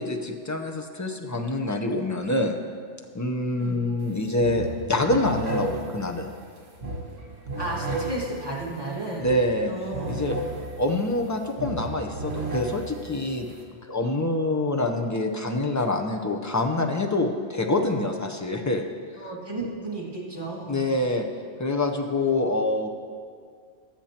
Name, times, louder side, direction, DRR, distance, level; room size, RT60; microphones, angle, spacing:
voice 1, 0.0-2.6 3.1-6.3 9.2-9.7 10.1-10.4 10.8-13.5 13.9-18.8 20.7-21.3 21.6-22.9, left 2 dB, 20° left, 3 dB, 0.5 m, -26 dB
sound 1, 4.0-4.1 4.4-13.6, right 2 dB, 80° right, 1.8 m, -34 dB
voice 2, 7.6-9.3 9.7-10.2 19.2-21.0, right 2 dB, 20° right, -5 dB, 1.9 m, -33 dB
20.0 x 7.3 x 2.9 m, 2.1 s
omnidirectional pair, 1.2 m